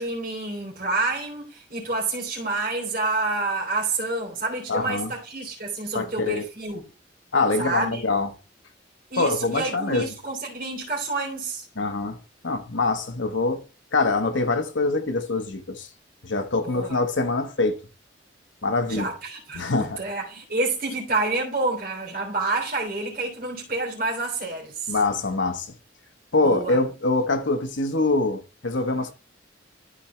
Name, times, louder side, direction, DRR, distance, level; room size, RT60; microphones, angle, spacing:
voice 1, 0.0-6.8 7.6-8.0 9.1-11.6 16.6-17.0 18.9-25.0 26.4-26.8, right 3 dB, 45° right, 3.3 m, -28 dB
voice 2, 4.7-5.1 5.9-6.4 7.3-8.3 9.2-10.1 11.8-13.6 13.9-15.9 16.2-17.8 18.6-19.1 19.6-20.0 24.9-25.7 26.3-29.1, left 3 dB, 80° left, 1.2 m, -24 dB
12.5 x 4.5 x 3.1 m
head